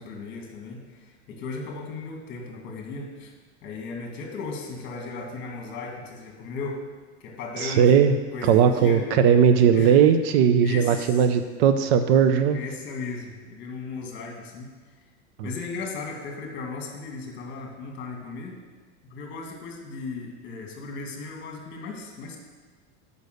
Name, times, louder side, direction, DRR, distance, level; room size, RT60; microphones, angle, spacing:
voice 1, 0.0-3.3 3.6-6.8 7.2-9.0 9.7-10.0 10.6-11.3 12.5-14.7 15.4-18.6 19.0-22.4, left 4 dB, 35° left, 1 dB, 1.7 m, -36 dB
voice 2, 7.6-8.1 8.4-12.6 15.4-15.5, right 7 dB, 60° right, 9 dB, 0.6 m, -18 dB
6.7 x 5.3 x 6.4 m, 1.4 s
supercardioid pair, 150°, 34 cm